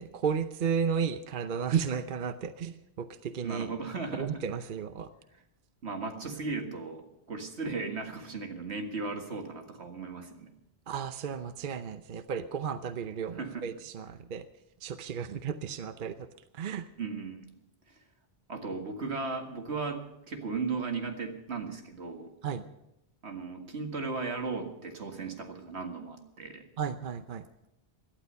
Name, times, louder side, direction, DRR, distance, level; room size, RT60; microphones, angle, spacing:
voice 1, 0.0-3.7 4.1-5.1 10.9-14.4 14.8-16.3 16.5-16.9 22.4-22.6 26.8-27.4, right 7 dB, 55° right, 11 dB, 0.8 m, -33 dB
voice 2, 3.4-4.4 5.8-10.5 13.4-13.7 17.0-17.5 17.9-18.0 18.5-22.3 23.2-26.7, right 4 dB, 80° right, 4 dB, 2.1 m, -36 dB
17.5 x 12.0 x 5.6 m, 0.83 s
omnidirectional pair, 1.1 m